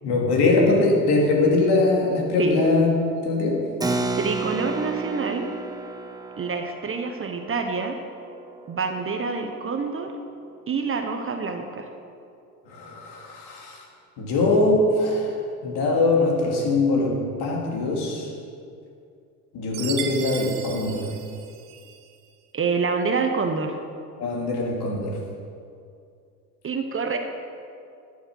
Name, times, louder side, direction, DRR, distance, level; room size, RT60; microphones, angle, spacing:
voice 1, 0.0-3.6 12.7-13.8 14.2-15.3 15.6-18.3 19.5-21.1 24.2-25.2, left 2 dB, 55° left, -1 dB, 2.9 m, -22 dB
Keyboard (musical), 3.8-9.8, right 3 dB, 10° right, 0.8 m, -32 dB
voice 2, 4.2-5.5 6.4-8.0 8.7-10.1 10.7-11.9 22.5-23.8 26.6-27.2, right 5 dB, 25° right, 5 dB, 1.0 m, -27 dB
Chime, 19.7-22.1, right 9 dB, 70° right, 1.3 m, -36 dB
12.5 x 7.4 x 6.3 m, 2.4 s
hypercardioid pair, 80°, 48 cm